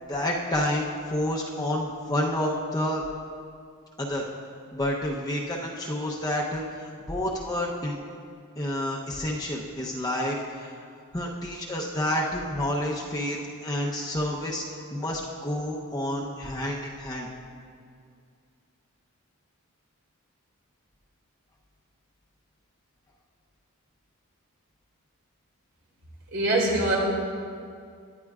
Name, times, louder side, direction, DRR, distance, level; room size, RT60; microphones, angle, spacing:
voice 1, 0.1-3.0 4.0-4.3 4.7-8.0 8.6-10.7 11.1-14.6 14.9-17.3, left 1 dB, 15° left, -3 dB, 0.8 m, -29 dB
voice 2, 26.3-27.0, right 2 dB, 70° right, -3 dB, 2.5 m, -23 dB
18.0 x 10.5 x 2.4 m, 2.3 s
head